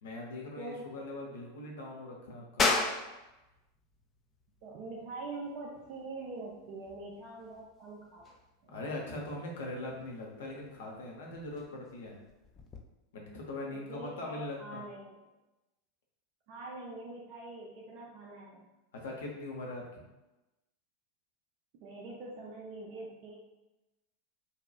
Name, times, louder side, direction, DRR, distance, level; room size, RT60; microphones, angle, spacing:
voice 1, 0.0-2.7 8.7-12.2 13.1-14.8 18.9-20.0, left 2 dB, 65° left, -1 dB, 0.6 m, -41 dB
voice 2, 0.6-0.9 4.6-8.2 8.6-8.8 13.7-15.2 16.5-18.7 21.7-23.4, right 2 dB, 50° right, -3 dB, 0.4 m, -44 dB
sound 1, 2.6-12.8, left 3 dB, 25° left, 0.3 m, -38 dB
2.7 x 2.2 x 2.3 m, 1.0 s
figure-of-eight pair, 90°, 0 cm